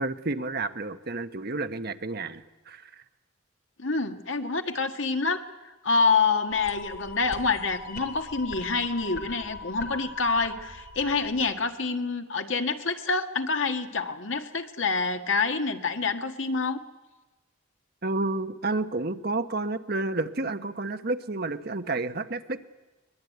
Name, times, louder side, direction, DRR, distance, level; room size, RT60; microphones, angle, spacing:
voice 1, 0.0-3.0 18.0-22.6, right 2 dB, 50° right, 9 dB, 1.1 m, -30 dB
voice 2, 3.8-16.8, left 4 dB, 65° left, 6 dB, 1.7 m, -27 dB
sound 1, 6.5-11.5, left 4 dB, 45° left, 3.5 m, -40 dB
22.5 x 21.5 x 9.4 m, 1.1 s
head